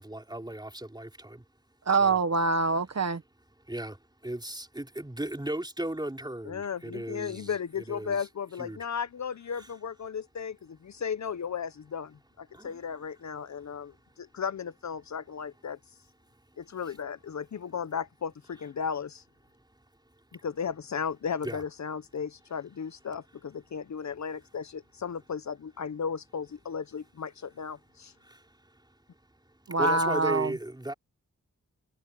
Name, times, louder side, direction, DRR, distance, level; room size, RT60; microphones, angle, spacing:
voice 1, 0.0-1.4 1.9-2.2 3.7-7.5 7.9-8.2 8.6-8.9 9.6-9.7 12.5-12.8 21.4-21.6 28.2-28.8 29.7-30.9, right 1 dB, 15° right, 4.6 m, -36 dB
voice 2, 1.9-3.2 29.7-30.5, right 3 dB, 55° right, 1.4 m, -25 dB
voice 3, 6.5-15.8 16.6-19.2 20.4-28.1, left 6 dB, 60° left, 0.8 m, -35 dB
wide cardioid pair, 75°, 31 cm